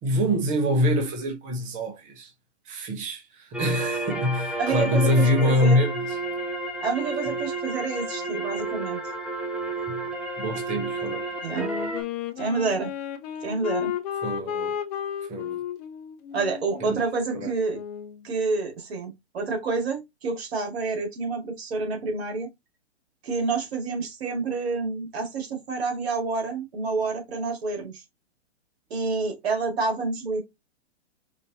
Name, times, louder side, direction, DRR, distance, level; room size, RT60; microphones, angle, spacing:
voice 1, 0.0-2.3 2.7-6.2 9.9-10.0 10.4-11.3 14.2-14.7 15.3-15.6 16.8-17.0 17.3-17.5, left 1 dB, 20° right, 0.9 m, -25 dB
sound 1, 3.5-12.0, right 2 dB, 5° right, 0.5 m, -31 dB
voice 2, 4.6-5.8 6.8-9.0 11.4-11.7 12.4-12.9 13.4-13.9 16.3-17.8 18.2-22.5 23.2-28.0 28.9-30.4, right 4 dB, 65° right, 2.0 m, -28 dB
Wind instrument woodwind instrument, 11.5-18.2, left 9 dB, 35° left, 0.8 m, -33 dB
5.2 x 2.7 x 2.8 m
hypercardioid pair, 120°, 34 cm